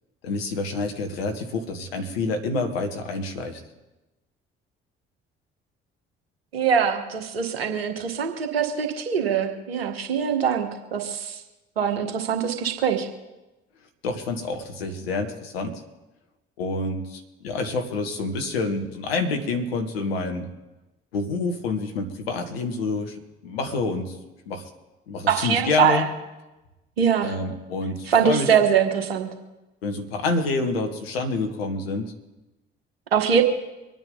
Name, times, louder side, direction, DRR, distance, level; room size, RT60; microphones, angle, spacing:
voice 1, 0.2-3.6 14.0-15.8 16.6-20.5 21.1-24.2 24.5-24.7 25.1-26.1 27.2-28.5 29.8-32.1, left 3 dB, 85° left, 6 dB, 1.6 m, -28 dB
voice 2, 6.5-11.4 11.8-13.1 25.3-26.0 27.0-27.3 28.1-29.3 33.1-33.4, right 7 dB, 90° right, 5 dB, 1.6 m, -23 dB
25.0 x 9.0 x 3.9 m, 1.1 s
hypercardioid pair, 50°, 29 cm